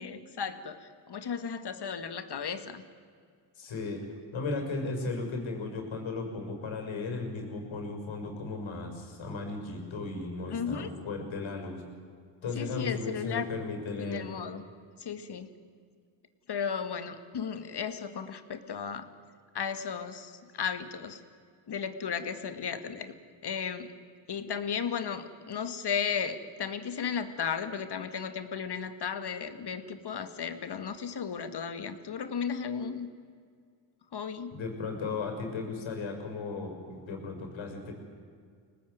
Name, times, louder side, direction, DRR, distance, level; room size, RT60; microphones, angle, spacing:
voice 1, 0.0-2.8 10.5-10.9 12.6-13.5 14.0-14.6 15.0-15.5 16.5-19.1 19.5-21.2 21.7-23.2 23.4-23.9 24.3-33.1 34.1-34.6, left 6 dB, 50° left, 10 dB, 2.2 m, -35 dB
voice 2, 3.5-4.0 4.3-11.8 12.4-14.3 34.5-37.9, left 3 dB, 70° left, 4 dB, 6.2 m, -36 dB
24.5 x 18.5 x 9.5 m, 2.1 s
supercardioid pair, 60°, 49 cm